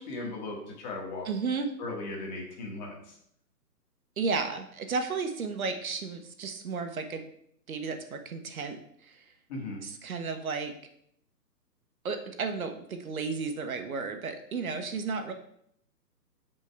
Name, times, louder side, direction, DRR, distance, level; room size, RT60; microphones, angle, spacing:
voice 1, 0.0-1.3 1.8-3.1 9.5-9.8, left 2 dB, 25° left, -1 dB, 1.6 m, -37 dB
voice 2, 1.2-1.7 4.2-7.2 7.7-9.2 9.8-10.7 12.0-15.3, right 4 dB, 55° right, 6 dB, 1.0 m, -33 dB
7.2 x 5.4 x 3.5 m, 0.70 s
hypercardioid pair, 150°, 50 cm